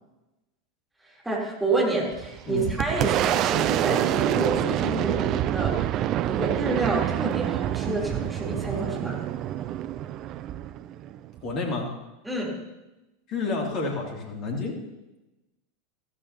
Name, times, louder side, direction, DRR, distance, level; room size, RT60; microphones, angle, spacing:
voice 1, 1.0-9.2 12.2-12.5, right 2 dB, 5° right, -3 dB, 3.7 m, -29 dB
Boom, 2.1-11.5, right 12 dB, 40° right, 0.4 m, -27 dB
voice 2, 11.4-11.9 13.3-14.7, left 3 dB, 40° left, 0 dB, 2.9 m, -29 dB
14.5 x 14.5 x 3.0 m, 1.0 s
figure-of-eight pair, 85°, 0 cm